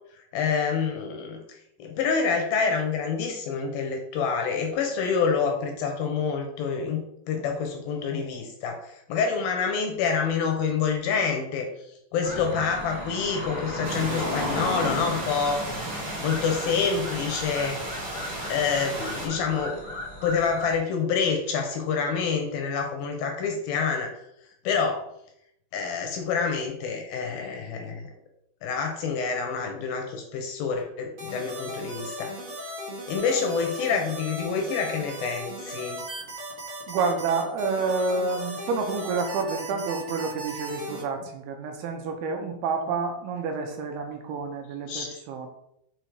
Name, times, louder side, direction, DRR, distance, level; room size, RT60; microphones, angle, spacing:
voice 1, 0.3-7.0 7.3-11.7 12.1-15.6 16.0-17.8 18.5-19.8 20.2-24.3 24.6-25.1 25.7-28.0 28.6-32.3 33.1-36.0 44.9-45.2, left 5 dB, 75° left, 3 dB, 2.4 m, -27 dB
sound 1, 12.2-20.8, left 1 dB, 10° right, 1.3 m, -35 dB
sound 2, 13.8-19.3, right 1 dB, 35° right, 2.6 m, -35 dB
sound 3, 31.2-41.0, right 1 dB, 55° right, 0.8 m, -37 dB
voice 2, 36.9-45.5, right 4 dB, 80° right, 4 dB, 2.7 m, -29 dB
6.7 x 4.1 x 4.7 m, 0.77 s
omnidirectional pair, 4.8 m